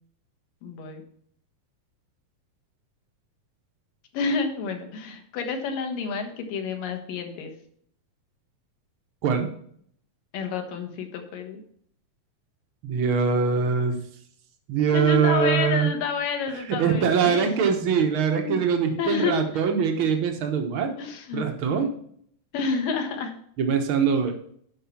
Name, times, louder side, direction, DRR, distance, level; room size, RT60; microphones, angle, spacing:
voice 1, 0.6-1.0 4.1-7.5 10.3-11.6 14.9-17.8 18.2-18.6 19.0-19.4 21.0-21.5 22.5-23.3, left 5 dB, 75° left, 5 dB, 3.1 m, -29 dB
voice 2, 12.8-14.0 14.7-15.9 16.8-20.9 21.3-21.9 23.6-24.3, right 6 dB, 70° right, 5 dB, 1.2 m, -23 dB
11.0 x 5.7 x 5.8 m, 0.62 s
omnidirectional pair, 4.1 m